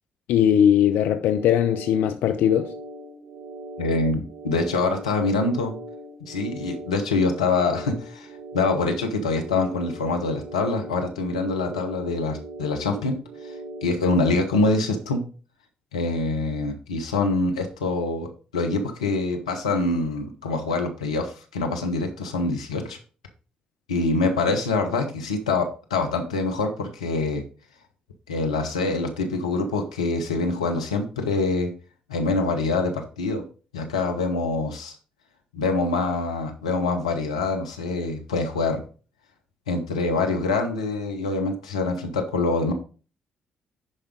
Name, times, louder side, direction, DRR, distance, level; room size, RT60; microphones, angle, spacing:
voice 1, 0.3-2.7, left 9 dB, 70° left, 0.5 m, -20 dB
sound 1, 1.1-13.9, right 1 dB, 45° right, 1.4 m, -40 dB
voice 2, 3.8-5.7 6.3-8.3 8.5-13.2 13.4-13.5 13.8-15.2 15.9-23.0 23.9-27.4 28.3-31.7 32.1-33.4 33.7-34.9 35.5-38.8 39.7-42.7, left 3 dB, 90° left, 1.0 m, -25 dB
10.5 x 5.0 x 3.7 m
hypercardioid pair, 45°, 3 cm